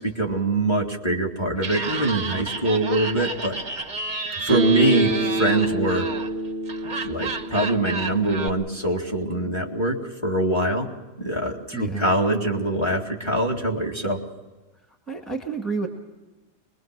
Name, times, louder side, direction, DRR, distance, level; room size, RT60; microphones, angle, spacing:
voice 1, 0.0-3.6 4.4-6.1 6.8-10.0 10.2-10.9 11.2-14.2, right 1 dB, 15° left, 1 dB, 2.3 m, -23 dB
Laughter, 1.6-8.5, right 4 dB, 35° right, 1.0 m, -31 dB
Bass guitar, 4.5-8.5, right 1 dB, 30° left, 5.9 m, -28 dB
voice 2, 11.7-12.1 15.1-15.9, right 4 dB, ahead, 3 dB, 1.9 m, -29 dB
24.5 x 21.5 x 6.2 m, 1.2 s
omnidirectional pair, 1.7 m